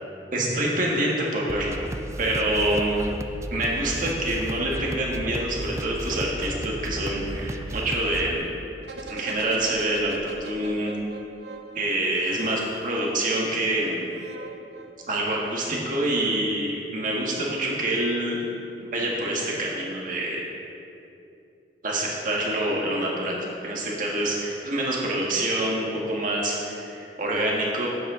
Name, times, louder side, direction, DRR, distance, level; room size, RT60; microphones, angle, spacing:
voice 1, 0.3-1.8 2.2-3.0 3.5-8.5 9.1-10.9 11.7-14.2 15.1-18.4 18.8-20.4 21.8-27.9, right 1 dB, 50° right, -3 dB, 1.6 m, -26 dB
sound 1, 1.5-8.3, right 1 dB, 15° right, 0.3 m, -34 dB
sound 2, 8.8-13.3 14.1-15.9 16.2-16.3, right 2 dB, 65° right, 0.8 m, -42 dB
10.5 x 8.8 x 3.8 m, 2.6 s
head